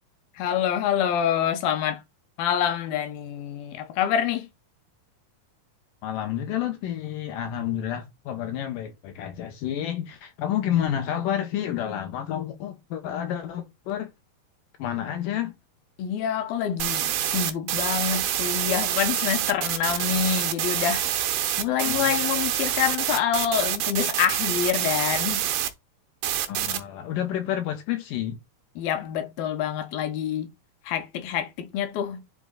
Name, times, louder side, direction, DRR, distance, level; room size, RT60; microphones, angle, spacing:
voice 1, 0.4-2.0 2.4-4.5 16.0-21.1 21.6-25.5 28.8-30.5 30.9-32.2, left 9 dB, 90° left, 2.7 m, -26 dB
voice 2, 6.0-14.1 14.8-15.5 21.9-22.1 26.5-28.4, left 10 dB, 75° left, 2.4 m, -29 dB
sound 1, 16.8-25.7 26.2-26.8, right 11 dB, 80° right, 2.6 m, -26 dB
10.0 x 3.8 x 3.9 m
omnidirectional pair, 4.1 m